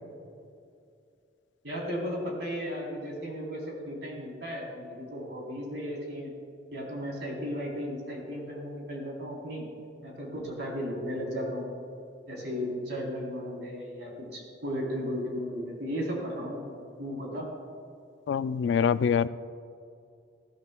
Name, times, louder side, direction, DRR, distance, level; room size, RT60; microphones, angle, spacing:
voice 1, 1.6-6.3 6.7-9.7 10.0-11.7 12.3-16.7 17.0-17.5, equal, 65° right, -2 dB, 3.6 m, -35 dB
voice 2, 18.3-19.3, left 7 dB, 70° left, 15 dB, 0.3 m, -25 dB
20.0 x 14.0 x 2.3 m, 2.5 s
head